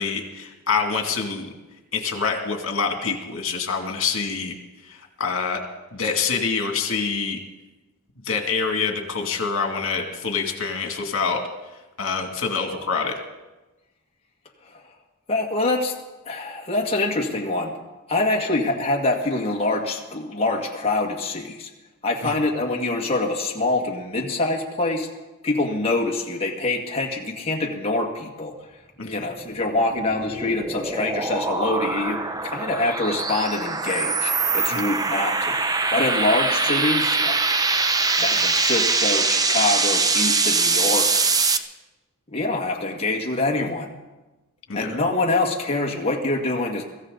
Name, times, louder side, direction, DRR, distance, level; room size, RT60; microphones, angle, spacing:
voice 1, 0.0-1.5 1.9-4.5 4.8-5.6 5.9-7.4 8.2-11.4 12.0-13.1 22.2-22.3 29.0-29.2 34.7-34.9 44.7-45.0, left 5 dB, 65° left, 3 dB, 2.5 m, -26 dB
voice 2, 15.3-16.0 16.3-17.7 18.1-21.7 22.0-25.1 25.4-28.5 29.0-35.6 35.9-37.4 38.1-41.2 42.3-43.9 44.7-46.8, left 2 dB, 25° left, 0 dB, 1.9 m, -25 dB
sound 1, 29.6-41.6, right 4 dB, 15° right, 0.6 m, -23 dB
24.0 x 15.0 x 4.0 m, 1.1 s
head